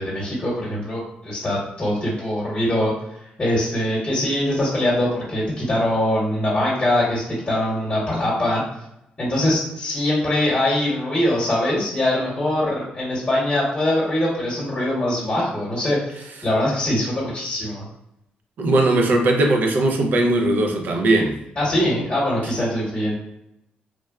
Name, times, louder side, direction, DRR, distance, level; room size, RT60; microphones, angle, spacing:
voice 1, 0.0-2.9 3.4-8.6 9.2-17.8 21.6-23.1, left 1 dB, 20° left, 1.0 m, -22 dB
voice 2, 18.6-21.4, right 2 dB, 60° right, 0.5 m, -19 dB
3.1 x 2.2 x 2.3 m
cardioid pair, 120°, 3 cm